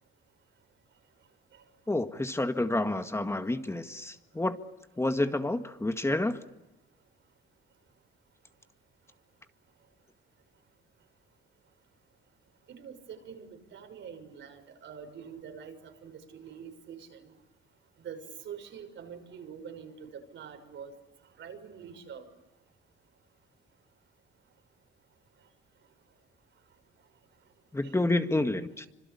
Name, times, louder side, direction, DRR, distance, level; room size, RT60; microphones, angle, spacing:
voice 1, 1.9-4.6 5.0-6.4 27.7-28.9, left 2 dB, 15° left, 7 dB, 1.8 m, -29 dB
voice 2, 12.7-15.8 16.0-17.3 18.0-20.9 21.4-22.3 27.8-27.9, right 7 dB, 70° right, 7 dB, 6.2 m, -45 dB
26.5 x 26.0 x 8.6 m, 0.98 s
cardioid pair, 90°, 20 cm